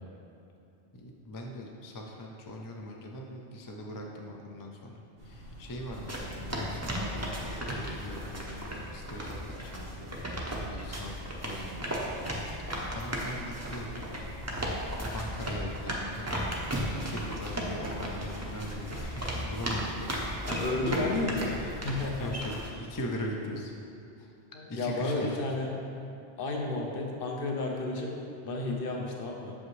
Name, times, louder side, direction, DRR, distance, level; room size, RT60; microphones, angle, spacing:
voice 1, 0.9-10.1 10.5-12.0 12.6-14.0 15.1-16.3 16.8-20.6 22.1-23.7 24.7-25.4, equal, 35° left, 0 dB, 0.3 m, -41 dB
sound 1, 5.2-22.2, equal, 85° right, 1.6 m, -46 dB
sound 2, 5.9-22.7, equal, 20° right, 0.5 m, -35 dB
voice 2, 20.5-22.3 24.5-25.7 26.4-28.1 28.4-29.5, left 2 dB, 55° left, 0 dB, 0.9 m, -32 dB
7.0 x 5.3 x 3.1 m, 2.7 s
omnidirectional pair, 1.2 m